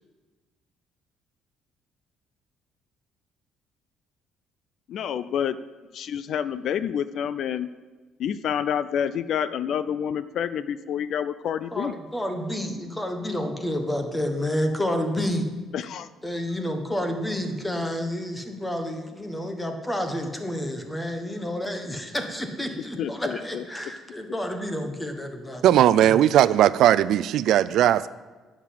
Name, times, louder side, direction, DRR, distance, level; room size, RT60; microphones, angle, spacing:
voice 1, 4.9-5.6 5.9-7.7 8.2-11.9 15.7-16.1 23.0-23.6, left 8 dB, 55° left, 0.4 m, -28 dB
voice 2, 11.7-15.4 16.2-26.2, left 1 dB, 10° left, 1.3 m, -30 dB
voice 3, 25.6-28.1, right 11 dB, 65° right, 0.4 m, -18 dB
11.0 x 7.4 x 7.6 m
cardioid pair, 145°, 0 cm